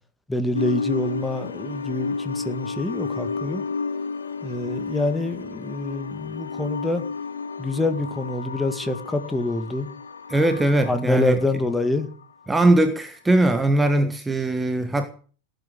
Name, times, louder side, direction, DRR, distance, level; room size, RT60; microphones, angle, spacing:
voice 1, 0.3-3.6 4.4-7.1 7.6-9.9 10.9-12.1 14.0-14.1, left 2 dB, 5° left, 1.9 m, -26 dB
sound 1, 0.5-12.5, left 4 dB, 70° left, 1.9 m, -32 dB
voice 2, 10.3-11.4 12.5-15.1, right 1 dB, 10° right, 1.6 m, -20 dB
18.0 x 9.5 x 8.1 m
figure-of-eight pair, 90°, 0 cm